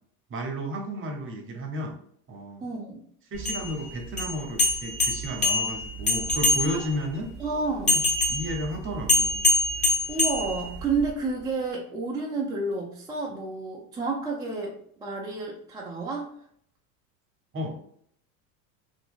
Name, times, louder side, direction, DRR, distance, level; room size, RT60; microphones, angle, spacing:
voice 1, 0.3-2.0 2.3-2.7 3.3-7.3 7.8-8.0 8.3-9.4 17.5-17.8, equal, 30° right, 3 dB, 0.9 m, -33 dB
voice 2, 2.6-3.0 6.7-6.9 7.4-8.0 10.1-14.7 15.0-16.3, right 3 dB, 10° right, -4 dB, 0.4 m, -30 dB
sound 1, 3.3-7.0 7.9-11.1, left 2 dB, 15° left, 1.2 m, -25 dB
2.9 x 2.5 x 3.7 m, 0.65 s
supercardioid pair, 105°, 44 cm